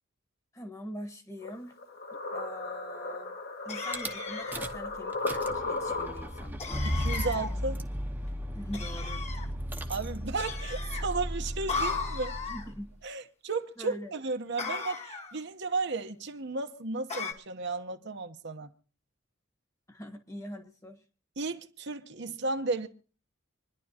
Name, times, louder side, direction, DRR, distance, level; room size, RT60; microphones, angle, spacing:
voice 1, 0.5-1.8 2.1-3.4 3.6-6.6 8.5-9.3 12.5-12.9 13.8-14.1 19.9-21.0, equal, 15° left, 1.4 m, -43 dB
sound 1, 1.4-6.5, left 3 dB, 55° left, 1.6 m, -35 dB
sound 2, 3.7-4.7 6.6-7.5 8.7-9.5 10.4-11.0 11.7-12.7 14.6-15.4 17.1-17.3, left 4 dB, 35° left, 1.5 m, -36 dB
Rattle / Car / Engine starting, 3.9-4.1 4.5-4.9 5.1-12.9, equal, 10° right, 0.9 m, -35 dB
voice 2, 6.8-7.8 9.9-12.4 13.0-18.7 21.4-22.9, right 3 dB, 60° right, 1.0 m, -34 dB
27.0 x 11.0 x 2.9 m
head